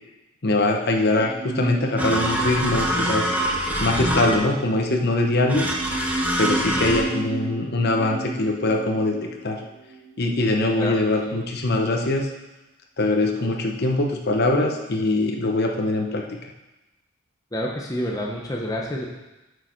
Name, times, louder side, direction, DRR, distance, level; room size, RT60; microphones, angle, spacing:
voice 1, 0.4-3.3 3.8-5.6 6.4-9.2 9.4-9.6 10.2-12.3 13.0-16.2, left 2 dB, 55° left, 1 dB, 1.0 m, -22 dB
sound 1, 1.1-10.4 10.7-10.8, right 2 dB, 45° right, 2.9 m, -34 dB
sound 2, 2.0-4.6 5.5-7.0, right 1 dB, 10° right, 1.0 m, -25 dB
voice 2, 17.5-19.1, left 1 dB, 20° left, -2 dB, 0.9 m, -28 dB
9.7 x 6.4 x 4.5 m, 1.0 s
head